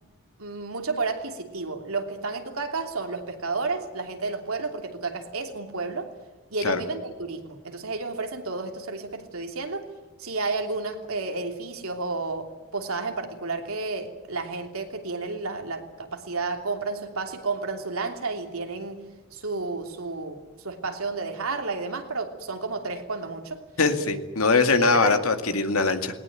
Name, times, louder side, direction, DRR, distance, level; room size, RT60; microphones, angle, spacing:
voice 1, 0.4-6.1 6.5-9.9 10.2-12.5 12.7-19.0 19.3-23.6 24.8-25.2, right 3 dB, 80° right, 4 dB, 3.0 m, -31 dB
voice 2, 23.8-26.2, left 3 dB, 80° left, 7 dB, 2.2 m, -22 dB
19.5 x 19.5 x 9.0 m, 1.2 s
head